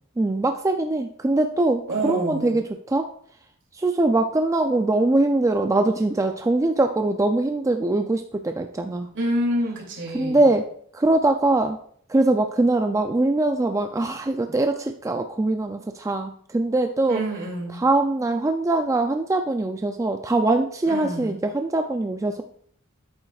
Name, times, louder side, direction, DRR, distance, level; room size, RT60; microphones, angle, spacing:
voice 1, 0.2-3.1 3.8-9.1 10.1-10.7 10.9-11.8 12.1-17.2 17.8-22.4, right 2 dB, 15° right, 5 dB, 0.3 m, -22 dB
voice 2, 1.9-2.6 9.1-10.5 17.1-17.8 20.8-21.4, right 1 dB, 60° right, -1 dB, 2.7 m, -27 dB
11.0 x 8.8 x 2.4 m, 0.63 s
head